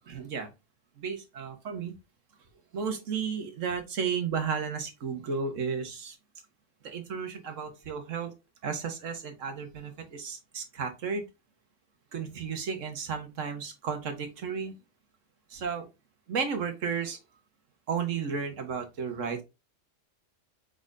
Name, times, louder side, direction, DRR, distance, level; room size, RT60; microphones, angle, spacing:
voice 1, 0.1-0.5 1.0-1.9 2.7-6.2 6.8-8.3 8.6-11.2 12.1-14.7 15.5-15.9 16.3-17.2 17.9-19.4, right 6 dB, 80° right, 6 dB, 1.5 m, -33 dB
4.9 x 4.1 x 2.5 m, 0.25 s
omnidirectional pair, 1.3 m